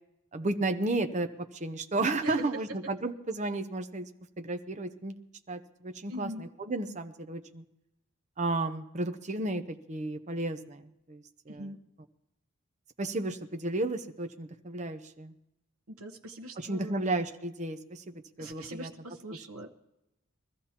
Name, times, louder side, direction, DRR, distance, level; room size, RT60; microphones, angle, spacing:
voice 1, 0.3-4.1 4.4-5.1 5.5-7.6 8.4-11.7 13.0-15.3 16.6-18.9, right 2 dB, 30° right, 7 dB, 0.7 m, -33 dB
voice 2, 6.1-6.5 11.5-11.8 15.9-17.0 18.4-19.7, right 1 dB, 80° right, 1 dB, 1.0 m, -42 dB
22.0 x 14.0 x 2.9 m, 0.88 s
head